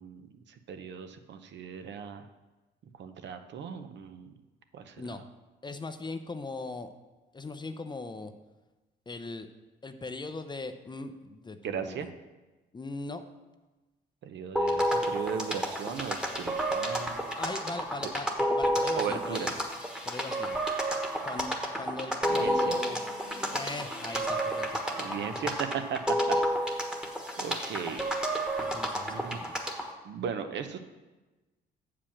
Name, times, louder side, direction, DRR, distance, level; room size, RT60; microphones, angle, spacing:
voice 1, 0.0-2.3 3.0-4.3 4.7-5.2 11.6-12.1 14.2-17.2 18.0-18.1 18.9-19.5 22.3-22.8 25.0-26.8 27.4-28.1 29.1-29.5 30.0-30.8, right 7 dB, 65° right, 8 dB, 0.8 m, -37 dB
voice 2, 5.6-6.9 7.3-8.3 9.1-9.5 9.8-12.1 12.7-13.2 17.4-19.5 20.1-20.6 21.2-23.0 23.5-24.8 25.1-25.5 26.3-26.4 28.6-29.7, left 3 dB, 20° left, 9 dB, 0.6 m, -39 dB
sound 1, 14.6-29.9, equal, 5° right, 1.3 m, -31 dB
7.3 x 5.0 x 7.1 m, 1.2 s
cardioid pair, 90°, 20 cm